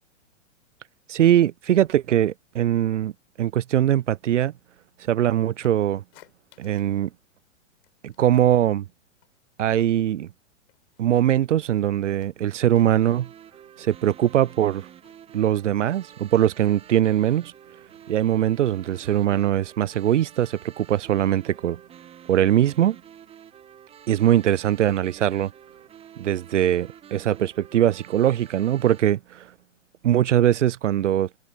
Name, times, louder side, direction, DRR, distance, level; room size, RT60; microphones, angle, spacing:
voice 1, 1.1-3.1 3.4-4.5 5.1-6.0 6.6-7.1 8.0-8.8 9.6-10.3 11.0-13.3 13.8-14.9 15.3-17.5 18.1-21.8 22.3-23.0 24.1-25.5 26.2-29.4 30.0-31.3, right 11 dB, 75° right, 0.6 m, -21 dB
sound 1, 5.6-7.0 7.3-8.6 8.9-10.2 10.6-16.0, left 17 dB, 50° left, 7.1 m, -59 dB
sound 2, 13.0-29.0, right 9 dB, 15° right, 1.0 m, -48 dB
figure-of-eight pair, 110°, 37 cm